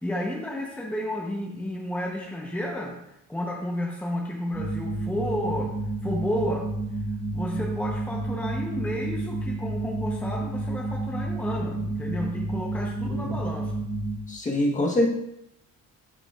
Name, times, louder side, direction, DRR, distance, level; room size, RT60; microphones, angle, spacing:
voice 1, 0.0-3.0 3.3-6.7 7.3-13.8, left 1 dB, 5° left, -2 dB, 0.9 m, -32 dB
sound 1, 4.5-14.2, right 2 dB, 15° right, 1.2 m, -30 dB
voice 2, 14.3-15.1, left 1 dB, 25° left, 0 dB, 1.3 m, -24 dB
13.0 x 4.9 x 2.5 m, 0.79 s
cardioid pair, 145°, 31 cm